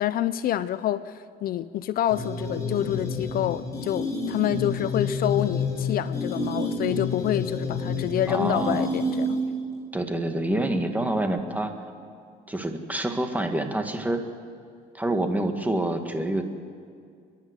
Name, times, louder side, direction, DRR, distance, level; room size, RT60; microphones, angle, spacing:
voice 1, 0.0-9.4, left 12 dB, 60° left, 15 dB, 0.5 m, -27 dB
sound 1, 2.1-9.6, left 2 dB, 20° left, 3.8 m, -29 dB
voice 2, 8.3-8.9 9.9-11.7 12.5-14.2 14.9-16.4, right 1 dB, 10° right, 5 dB, 1.9 m, -27 dB
30.0 x 11.0 x 8.2 m, 2.2 s
cardioid pair, 110°, 17 cm